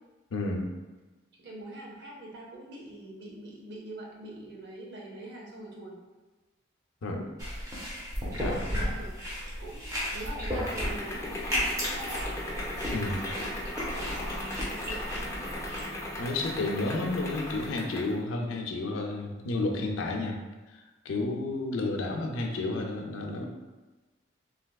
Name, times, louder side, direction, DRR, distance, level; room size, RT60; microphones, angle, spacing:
voice 1, 0.3-0.7 7.0-7.3 8.4-8.7 12.9-13.2 16.2-20.4 20.7-23.4, left 2 dB, 85° left, 2 dB, 0.5 m, -31 dB
voice 2, 1.4-6.0 8.3-9.1 9.6-12.3 13.8-15.6 21.4-21.5, right 1 dB, 55° right, -2 dB, 0.6 m, -44 dB
sound 1, 7.4-15.8, equal, 15° right, 0.6 m, -34 dB
sound 2, 9.4-18.2, left 1 dB, 15° left, 0.3 m, -38 dB
3.3 x 2.7 x 2.3 m, 1.2 s
head